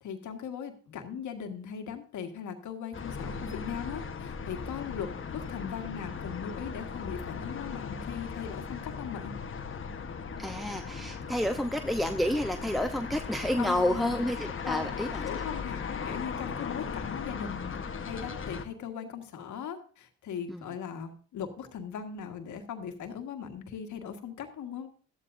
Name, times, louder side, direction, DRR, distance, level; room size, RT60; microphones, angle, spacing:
voice 1, 0.0-9.3 13.6-14.2 14.6-24.9, left 7 dB, 70° left, 5 dB, 1.8 m, -39 dB
sound 1, 2.9-18.6, left 5 dB, 40° left, 1.2 m, -38 dB
voice 2, 10.4-15.3 20.5-20.7, left 1 dB, ahead, 6 dB, 0.8 m, -30 dB
13.5 x 12.5 x 2.6 m, 0.42 s
supercardioid pair, 55°, 31 cm